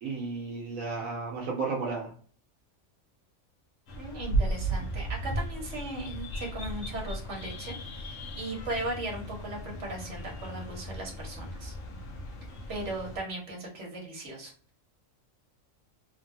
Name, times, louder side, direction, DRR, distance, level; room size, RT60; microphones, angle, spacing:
voice 1, 0.0-2.1, right 4 dB, 80° right, -3 dB, 1.2 m, -33 dB
sound 1, 3.9-13.2, right 1 dB, 75° left, 1.1 m, -35 dB
voice 2, 3.9-11.7 12.7-14.5, right 2 dB, 60° right, -1 dB, 1.4 m, -37 dB
3.2 x 2.3 x 2.6 m, 0.44 s
omnidirectional pair, 1.4 m